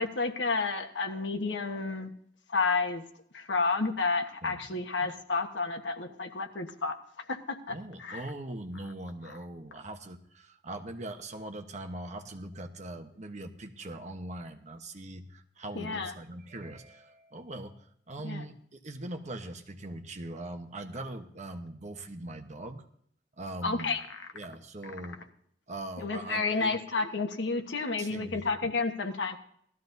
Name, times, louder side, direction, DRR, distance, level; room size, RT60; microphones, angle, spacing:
voice 1, 0.0-2.1 2.5-3.0 3.3-7.0 7.3-8.2 15.7-16.1 18.2-18.4 23.6-24.0 26.0-29.4, left 4 dB, 80° left, 5 dB, 1.2 m, -31 dB
voice 2, 4.4-5.1 7.7-22.8 23.4-24.0 24.3-25.2 25.7-26.8 28.0-28.7, right 1 dB, 40° right, 6 dB, 1.0 m, -41 dB
18.0 x 13.5 x 2.7 m, 0.66 s
head